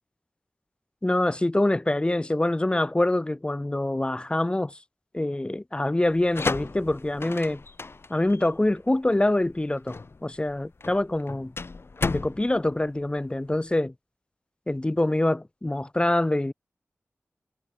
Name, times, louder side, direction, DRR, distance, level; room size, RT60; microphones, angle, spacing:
voice 1, 1.0-4.8 5.1-7.6 8.1-11.5 12.1-13.9 14.7-16.5, left 1 dB, 20° left, 1.0 m, -25 dB
sound 1, 6.1-13.7, left 3 dB, 55° left, 2.1 m, -34 dB
wide cardioid pair, 75°, 5 cm